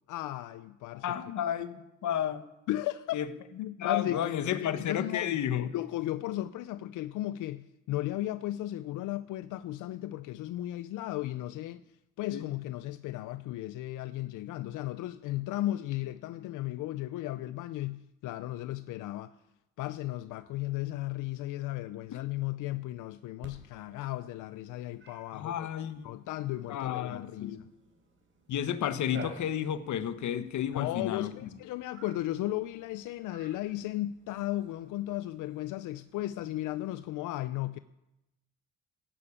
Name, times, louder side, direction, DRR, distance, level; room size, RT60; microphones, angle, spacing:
voice 1, 0.1-1.2 2.7-3.2 3.6-5.4 5.7-11.8 12.2-19.4 19.8-25.7 26.0-27.7 30.7-37.8, left 15 dB, 85° left, 0.5 m, -35 dB
voice 2, 1.0-2.4 3.1-3.3 3.8-5.7 12.3-12.4 22.1-22.2 25.3-26.1 26.7-27.6 28.5-31.3, left 10 dB, 70° left, 1.2 m, -32 dB
Cat, 23.4-37.1, right 4 dB, 45° right, 4.7 m, -54 dB
15.0 x 9.9 x 8.5 m
cardioid pair, 90°, 30 cm